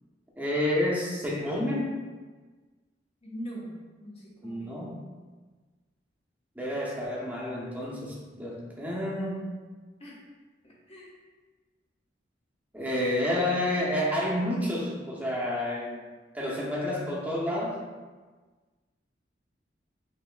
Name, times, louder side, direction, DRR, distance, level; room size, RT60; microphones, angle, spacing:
voice 1, 0.4-2.0 4.4-4.9 6.6-8.1 8.4-9.4 12.7-16.0 16.3-17.8, left 1 dB, 10° right, -4 dB, 0.7 m, -29 dB
voice 2, 3.2-4.7 10.0-10.2 10.6-11.1, equal, 35° left, -6 dB, 0.8 m, -42 dB
5.6 x 2.8 x 2.2 m, 1.3 s
head